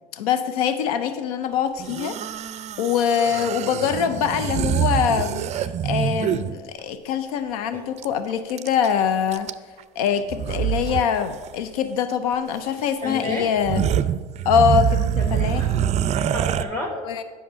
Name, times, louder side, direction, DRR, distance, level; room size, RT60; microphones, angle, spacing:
voice 1, 0.1-2.2 2.8-9.5 10.0-13.9 14.5-15.6 16.9-17.2, left 8 dB, 90° left, 11 dB, 0.5 m, -23 dB
sound 1, 1.8-6.5 8.0-8.1 8.3-8.9 9.3-9.8 10.3-11.1 11.3-11.5 12.6-12.7 13.2-13.3 13.6-16.6, right 10 dB, 40° right, 0.4 m, -25 dB
voice 2, 13.0-13.6 15.2-17.1, left 1 dB, 15° left, 0 dB, 1.1 m, -32 dB
8.5 x 5.8 x 5.6 m, 1.5 s
supercardioid pair, 95°, 18 cm